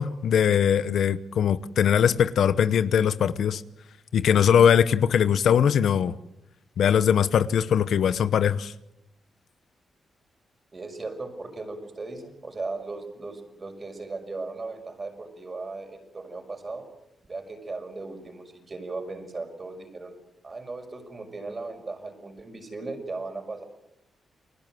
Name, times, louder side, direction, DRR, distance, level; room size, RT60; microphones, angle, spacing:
voice 1, 0.0-3.6 4.1-6.1 6.8-8.7, left 8 dB, 80° left, 1.0 m, -21 dB
voice 2, 10.7-16.8 17.3-20.1 20.4-23.6, right 3 dB, 30° right, 5.8 m, -37 dB
30.0 x 21.0 x 7.8 m
cardioid pair, 110°, 0 cm